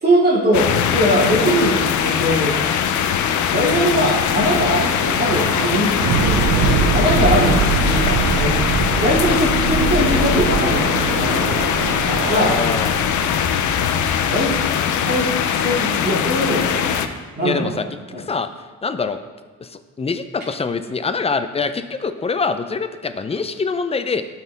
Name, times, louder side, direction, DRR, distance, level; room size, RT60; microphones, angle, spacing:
voice 1, 0.0-2.6 3.5-4.9 5.2-7.6 7.8-8.5 9.0-11.6 12.3-12.5 14.3-14.5 15.0-15.3 15.6-17.0 17.4-17.8 18.1-18.2, equal, 35° right, -6 dB, 2.4 m, -21 dB
sound 1, 0.5-17.1, left 8 dB, 75° left, 0.6 m, -21 dB
Laughter, 4.2-14.7, right 3 dB, 65° right, 1.7 m, -29 dB
Thunder / Explosion, 6.0-14.2, right 5 dB, 90° right, 0.7 m, -23 dB
voice 2, 12.3-13.1 17.4-17.8 18.3-18.5 18.8-19.2 19.6-24.2, left 4 dB, 20° left, 10 dB, 0.5 m, -24 dB
12.0 x 4.5 x 3.4 m, 1.3 s
cardioid pair, 90°, 30 cm